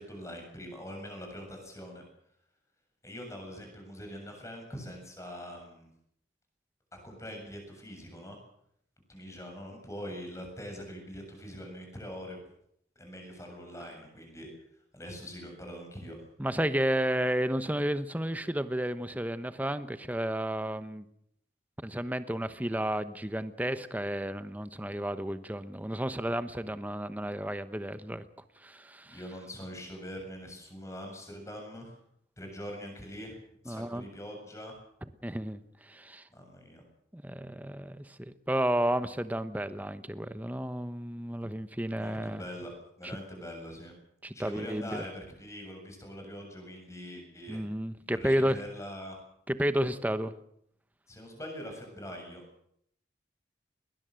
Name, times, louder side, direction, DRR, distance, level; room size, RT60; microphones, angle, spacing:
voice 1, 0.0-2.0 3.0-5.9 6.9-8.4 9.1-12.4 13.0-14.5 14.9-16.2 29.0-32.0 32.4-33.4 33.6-34.8 36.3-36.8 42.0-42.7 43.0-43.9 44.3-47.6 48.1-49.2 51.1-52.4, equal, 15° left, 3 dB, 7.5 m, -43 dB
voice 2, 16.4-21.0 21.8-28.3 28.6-29.2 33.7-34.0 35.2-36.2 37.1-42.4 44.2-45.0 47.5-48.6 49.5-50.3, right 1 dB, 10° right, 12 dB, 1.0 m, -32 dB
21.5 x 20.0 x 7.8 m, 0.71 s
head